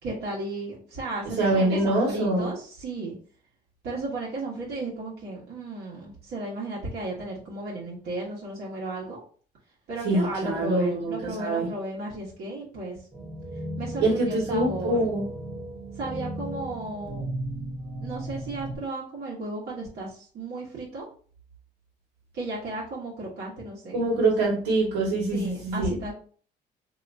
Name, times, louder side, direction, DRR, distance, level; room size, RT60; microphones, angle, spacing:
voice 1, 0.0-3.1 3.8-9.2 9.9-13.0 13.8-15.0 16.0-17.3 18.0-21.0 22.3-24.0 25.3-26.1, right 2 dB, 70° right, -6 dB, 1.3 m, -34 dB
voice 2, 1.4-2.5 10.0-11.7 14.0-15.3 23.9-26.0, right 2 dB, 90° right, -3 dB, 1.4 m, -24 dB
sound 1, 13.1-18.8, right 1 dB, 25° right, 1.0 m, -36 dB
3.4 x 2.8 x 2.6 m, 0.43 s
cardioid pair, 110°, 17 cm